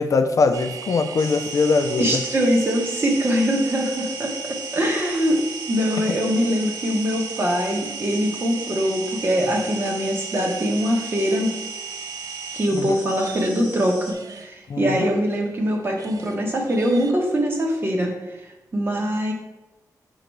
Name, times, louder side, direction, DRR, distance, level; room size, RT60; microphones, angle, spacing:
voice 1, 0.0-2.1 12.8-13.0 14.7-15.0, left 4 dB, 50° left, 7 dB, 0.5 m, -21 dB
sound 1, 0.5-13.8 14.1-16.4 16.7-17.1, right 8 dB, 55° right, 0.5 m, -37 dB
sound 2, 1.2-14.1, right 1 dB, 80° right, 2.3 m, -38 dB
voice 2, 2.0-5.4 5.7-11.5 12.5-18.1 18.7-19.3, equal, 35° right, 1 dB, 1.3 m, -23 dB
6.7 x 3.9 x 4.7 m, 1.0 s
wide cardioid pair, 165°, 7 cm